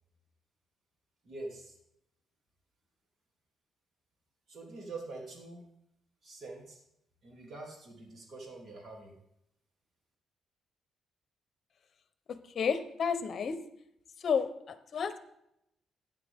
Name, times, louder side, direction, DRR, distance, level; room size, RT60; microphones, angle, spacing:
voice 1, 1.2-1.7 4.5-5.6 6.2-6.8 7.2-9.1, right 3 dB, 50° right, -1 dB, 3.0 m, -45 dB
voice 2, 12.3-13.6 14.2-15.2, left 6 dB, 50° left, 11 dB, 0.9 m, -31 dB
12.5 x 9.6 x 3.6 m, 0.79 s
cardioid pair, 130°, 0 cm